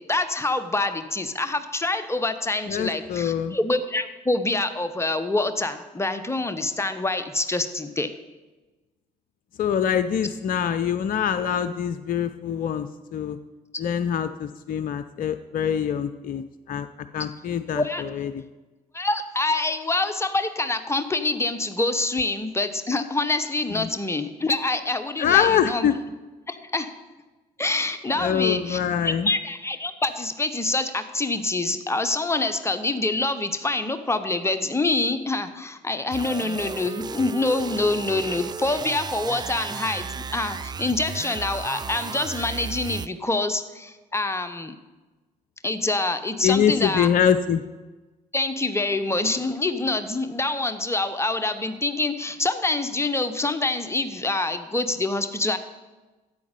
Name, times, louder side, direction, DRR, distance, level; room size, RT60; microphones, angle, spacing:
voice 1, 0.1-8.1 17.7-18.0 18.9-25.9 26.7-26.9 27.6-44.7 45.6-47.1 48.3-55.6, left 2 dB, 15° left, 9 dB, 1.1 m, -26 dB
voice 2, 2.7-3.6 9.6-13.4 13.8-16.9 17.1-18.4 23.7-23.9 25.2-25.9 28.2-29.3 46.4-47.6, left 8 dB, 45° left, 12 dB, 0.6 m, -24 dB
sound 1, 36.1-43.1, right 6 dB, 20° right, 0.4 m, -34 dB
13.0 x 8.2 x 5.3 m, 1.2 s
figure-of-eight pair, 45°, 20 cm